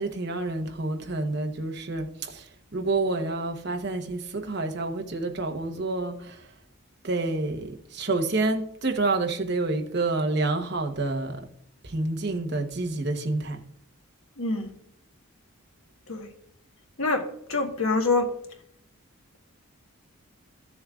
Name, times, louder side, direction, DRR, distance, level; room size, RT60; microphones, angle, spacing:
voice 1, 0.0-6.5 7.0-11.5 11.8-13.6, right 2 dB, 50° right, 1.0 m, -28 dB
voice 2, 14.4-14.7 16.1-16.3 17.0-17.2 17.5-18.3, left 3 dB, 75° left, 1.4 m, -25 dB
14.5 x 7.1 x 2.4 m
head